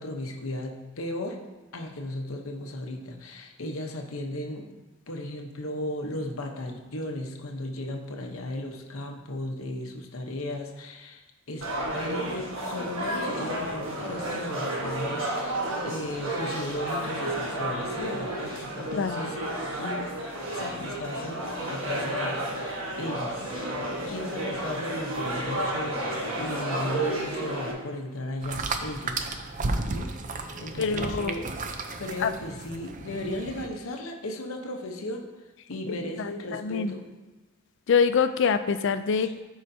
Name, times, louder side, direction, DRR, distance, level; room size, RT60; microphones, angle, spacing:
voice 1, 0.0-1.4 1.7-4.7 5.1-19.4 19.7-20.1 20.5-29.6 29.9-30.1 30.6-31.5 32.0-35.2 35.7-37.0 39.1-39.3, left 1 dB, 80° left, 2 dB, 0.9 m, -36 dB
sound 1, 11.6-27.7, right 1 dB, 70° right, 1.4 m, -31 dB
voice 2, 19.0-19.3 30.8-31.4 32.2-32.3 36.2-36.9 37.9-39.4, left 6 dB, 60° left, 11 dB, 0.4 m, -25 dB
sound 2, 28.4-33.7, right 3 dB, 40° right, 0.5 m, -33 dB
12.5 x 4.8 x 2.7 m, 1.2 s
head